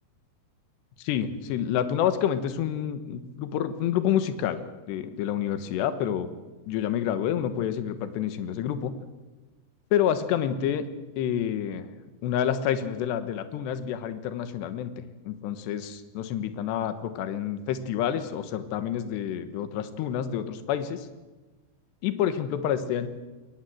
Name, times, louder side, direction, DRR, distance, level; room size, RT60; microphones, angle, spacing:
voice 1, 1.0-4.6 4.9-6.3 6.7-8.9 9.9-10.8 11.2-11.9 12.2-14.9 15.3-21.1 22.0-23.1, left 9 dB, 70° left, 11 dB, 3.3 m, -28 dB
21.0 x 19.5 x 7.8 m, 1.2 s
omnidirectional pair, 5.3 m